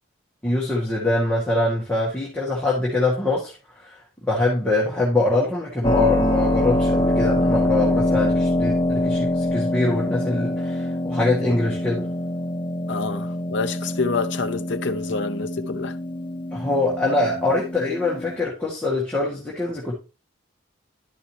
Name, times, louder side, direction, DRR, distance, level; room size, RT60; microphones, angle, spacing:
voice 1, 0.4-4.0 4.3-12.1 16.5-19.9, left 2 dB, 5° left, 2.0 m, -23 dB
Keyboard (musical), 5.8-18.4, left 1 dB, 25° left, 1.0 m, -24 dB
voice 2, 12.9-16.0, left 4 dB, 60° left, 0.7 m, -27 dB
12.0 x 5.4 x 3.0 m
head